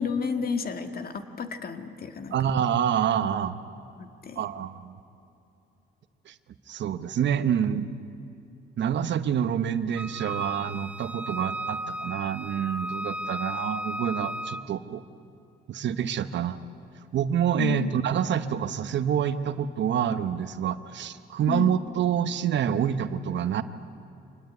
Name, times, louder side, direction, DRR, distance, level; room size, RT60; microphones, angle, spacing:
voice 1, 0.0-2.4 4.0-4.4 17.6-17.9 21.5-21.7, left 6 dB, 50° left, 8 dB, 1.8 m, -31 dB
voice 2, 2.3-3.5 4.4-5.0 6.3-6.4 6.7-7.9 8.8-15.0 15.7-16.6 17.1-23.6, right 8 dB, 65° right, 11 dB, 1.1 m, -27 dB
Wind instrument woodwind instrument, 10.0-14.7, equal, 5° right, 0.8 m, -35 dB
25.5 x 19.5 x 9.3 m, 2.8 s
cardioid pair, 90°, 20 cm